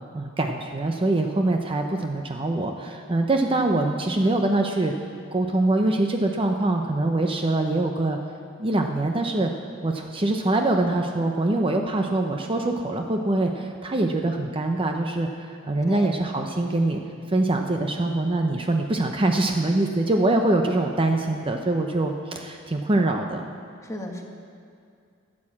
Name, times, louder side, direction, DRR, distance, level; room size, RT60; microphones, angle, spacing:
voice 1, 0.1-4.9 5.3-8.2 8.6-9.5 9.8-17.0 17.3-23.4, right 2 dB, 25° right, 3 dB, 0.7 m, -24 dB
voice 2, 15.9-16.2 23.8-24.2, equal, 15° left, 1 dB, 1.4 m, -34 dB
13.0 x 8.6 x 7.3 m, 2.3 s
head